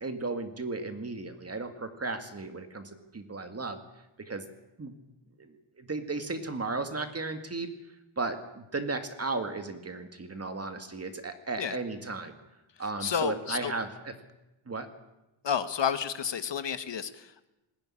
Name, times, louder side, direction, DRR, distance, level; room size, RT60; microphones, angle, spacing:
voice 1, 0.0-3.8 4.2-4.4 4.8-5.0 5.4-7.7 8.2-12.3 12.8-14.1 14.7-14.9, right 3 dB, 30° right, 7 dB, 2.0 m, -35 dB
voice 2, 13.0-13.7 15.4-17.5, left 7 dB, 60° left, 11 dB, 1.3 m, -31 dB
20.5 x 16.0 x 9.9 m, 0.97 s
wide cardioid pair, 165°, 48 cm